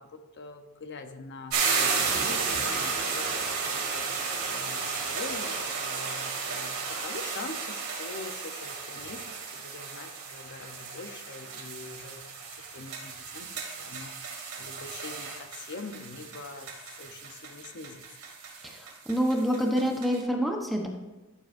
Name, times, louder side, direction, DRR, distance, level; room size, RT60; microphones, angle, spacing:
voice 1, 0.0-12.4 12.7-16.7 17.0-18.0, left 3 dB, 55° left, 7 dB, 0.8 m, -44 dB
sound 1, 1.5-20.2, right 5 dB, 75° right, 2.8 m, -33 dB
voice 2, 18.6-20.9, equal, ahead, 0 dB, 0.9 m, -27 dB
13.5 x 7.7 x 2.6 m, 1.1 s
head